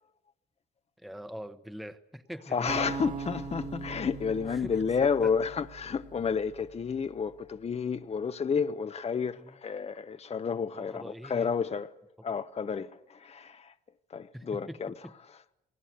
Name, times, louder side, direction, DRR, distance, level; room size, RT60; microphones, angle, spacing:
voice 1, 1.0-2.8 4.5-4.7 5.0-5.3 9.4-9.5 10.7-11.8 12.3-12.4 14.3-15.1, equal, ahead, 1.0 m, -43 dB
voice 2, 2.5-11.9 12.2-13.7 14.1-14.9, left 6 dB, 30° left, 0.8 m, -31 dB
sound 1, 2.7-6.8, right 4 dB, 35° right, 2.4 m, -40 dB
27.5 x 19.5 x 8.0 m
cardioid pair, 90°, 20 cm